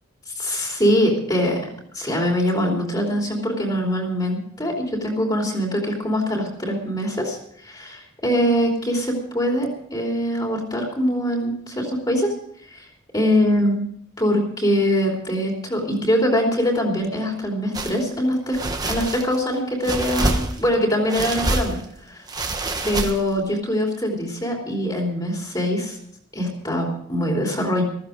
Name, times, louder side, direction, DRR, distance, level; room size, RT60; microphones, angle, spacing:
voice 1, 0.3-1.6 1.9-12.3 12.7-12.8 13.1-13.8 14.2-18.6 18.9-21.8 22.1-22.2 22.8-26.0 26.3-27.9, equal, 20° left, 0 dB, 3.1 m, -23 dB
sound 1, 17.7-18.0 18.5-19.4 19.8-20.7 21.1-21.8 22.3-23.4, right 2 dB, 20° right, 1.2 m, -26 dB
15.5 x 15.0 x 5.0 m, 0.66 s
head